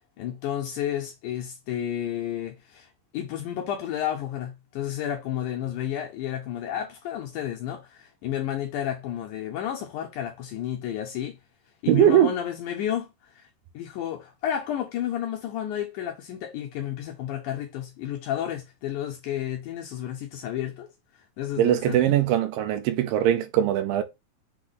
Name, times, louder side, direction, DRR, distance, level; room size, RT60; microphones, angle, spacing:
voice 1, 0.2-11.4 11.8-13.5 13.7-20.9 21.4-22.0, left 10 dB, 80° left, 1.8 m, -31 dB
voice 2, 11.9-12.3 21.6-24.0, right 11 dB, 90° right, 2.3 m, -21 dB
6.0 x 2.1 x 3.8 m
omnidirectional pair, 4.0 m